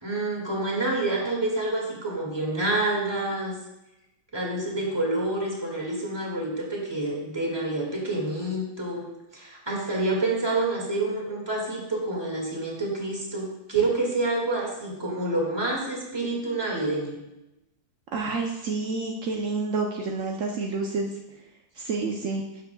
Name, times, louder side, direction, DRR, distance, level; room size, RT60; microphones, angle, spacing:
voice 1, 0.0-3.5 4.3-9.1 9.3-17.2, right 2 dB, 15° right, -2 dB, 1.7 m, -28 dB
voice 2, 18.1-21.1 21.8-22.4, right 3 dB, 75° right, 1 dB, 0.7 m, -29 dB
12.5 x 6.9 x 2.2 m, 0.93 s
omnidirectional pair, 2.1 m